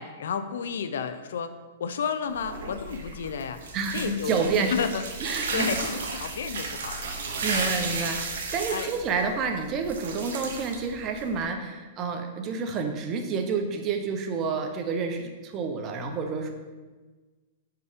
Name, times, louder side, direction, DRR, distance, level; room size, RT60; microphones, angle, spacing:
voice 1, 0.0-4.3 4.7-5.0 5.5-7.7 8.7-8.9, left 6 dB, 85° left, 11 dB, 0.4 m, -32 dB
sound 1, 2.3-11.4, right 3 dB, 80° right, 1.1 m, -34 dB
voice 2, 3.7-4.7 5.2-5.8 7.4-16.5, right 5 dB, 30° right, 5 dB, 0.7 m, -29 dB
4.7 x 4.6 x 5.1 m, 1.3 s
hypercardioid pair, 140°, 0 cm